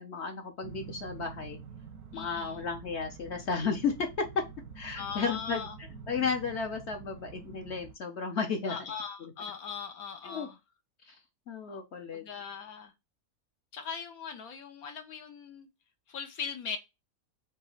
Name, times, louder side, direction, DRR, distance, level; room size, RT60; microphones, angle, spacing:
voice 1, 0.0-1.6 2.1-4.4 4.7-8.8 9.2-9.3 10.2-10.5 11.0-11.2 11.5-12.2, left 5 dB, 55° left, 1.0 m, -33 dB
sound 1, 0.6-7.9, right 6 dB, 80° right, 1.3 m, -47 dB
voice 2, 2.1-2.6 4.9-5.7 8.7-10.5 12.1-12.9 13.7-15.7 16.1-16.8, left 6 dB, 75° left, 1.2 m, -40 dB
4.3 x 2.9 x 3.8 m
omnidirectional pair, 1.6 m